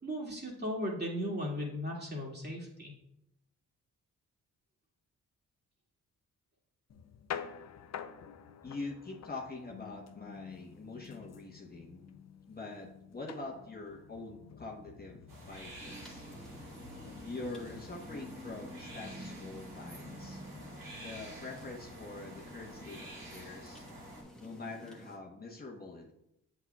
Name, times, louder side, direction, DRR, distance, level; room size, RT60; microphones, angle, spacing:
voice 1, 0.0-2.9, equal, 30° right, -2 dB, 2.2 m, -36 dB
sound 1, 6.9-23.0, left 8 dB, 50° left, 0.5 m, -50 dB
voice 2, 8.6-12.1 12.5-16.2 17.2-20.4 21.0-23.9 24.4-26.1, left 3 dB, 30° left, -1 dB, 1.0 m, -45 dB
sound 2, 15.3-24.2, right 1 dB, 70° right, 2.1 m, -50 dB
sound 3, 15.8-25.2, equal, ahead, 1.2 m, -50 dB
7.9 x 6.3 x 2.3 m, 0.82 s
cardioid pair, 60°, 33 cm